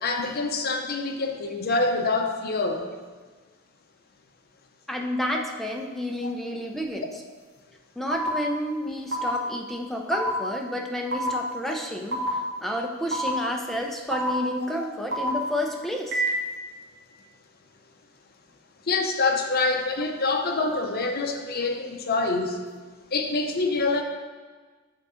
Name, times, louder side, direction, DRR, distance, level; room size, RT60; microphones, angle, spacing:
voice 1, 0.0-2.9 6.2-6.3 11.7-11.8 14.8-14.9 18.9-22.7 23.1-24.0, left 3 dB, 45° left, 4 dB, 0.6 m, -26 dB
voice 2, 4.9-7.1 8.0-16.2, equal, ahead, 1 dB, 0.5 m, -30 dB
sound 1, 8.1-8.3 9.1-9.3 10.1-10.3 11.1-11.3 12.1-12.3 13.1-13.3 14.1-14.3 15.1-15.3 16.1-16.3, right 2 dB, 50° right, 1.1 m, -27 dB
7.0 x 3.7 x 5.0 m, 1.4 s
head